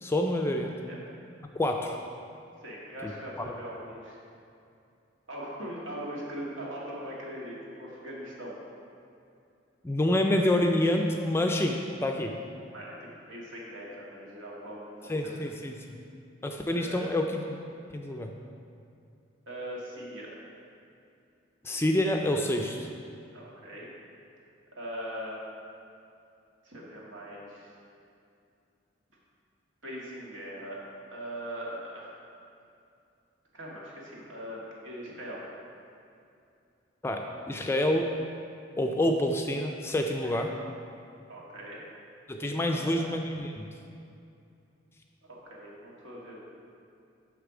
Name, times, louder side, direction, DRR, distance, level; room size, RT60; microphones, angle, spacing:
voice 1, 0.0-0.8 1.6-2.0 9.8-12.3 15.1-15.7 16.4-17.4 17.9-18.3 21.6-22.9 37.0-38.1 38.8-40.5 42.3-43.7, left 1 dB, 15° left, 3 dB, 0.3 m, -27 dB
voice 2, 2.6-4.2 5.3-8.6 12.7-15.4 16.7-17.1 19.5-20.4 23.3-23.9 24.8-25.5 26.6-27.8 29.8-30.8 31.1-32.2 33.5-35.4 40.2-40.4 41.3-41.8 42.6-43.1 45.2-46.4, equal, 90° right, -4 dB, 1.8 m, -41 dB
6.7 x 6.4 x 4.9 m, 2.5 s
head